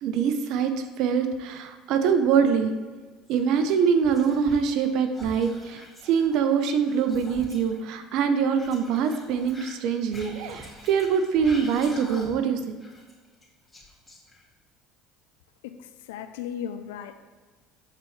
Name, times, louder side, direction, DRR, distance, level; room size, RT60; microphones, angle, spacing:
voice 1, 0.0-2.7 3.3-12.8, right 6 dB, 65° right, 8 dB, 0.8 m, -24 dB
Whispering, 3.3-4.9 5.1-7.8 8.5-12.5 12.8-14.6, left 1 dB, 15° left, 2.0 m, -45 dB
voice 2, 16.1-17.2, left 8 dB, 85° left, 9 dB, 0.5 m, -36 dB
12.5 x 4.1 x 3.3 m, 1.3 s
supercardioid pair, 85°, 0 cm